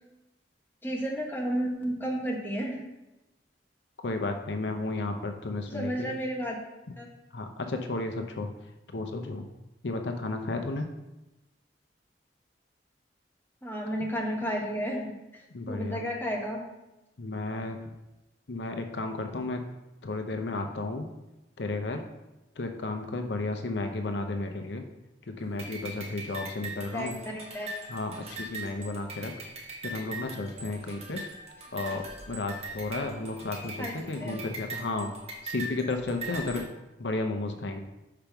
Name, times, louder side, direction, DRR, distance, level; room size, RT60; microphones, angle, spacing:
voice 1, 0.8-2.8 5.7-6.6 7.0-7.1 13.6-16.6 26.9-27.7 33.8-34.4, equal, 10° left, -1 dB, 1.2 m, -32 dB
voice 2, 4.0-6.1 7.3-8.5 8.9-9.5 9.8-10.9 15.5-16.0 17.2-17.8 18.5-19.6 20.0-21.1 21.6-22.0 22.6-24.8 25.2-27.2 27.9-29.3 29.8-31.2 31.7-35.1 35.4-36.7 37.0-37.8, left 2 dB, 80° left, 5 dB, 0.7 m, -33 dB
sound 1, 25.6-36.6, right 2 dB, 35° right, 1.6 m, -41 dB
5.8 x 5.2 x 5.9 m, 0.99 s
head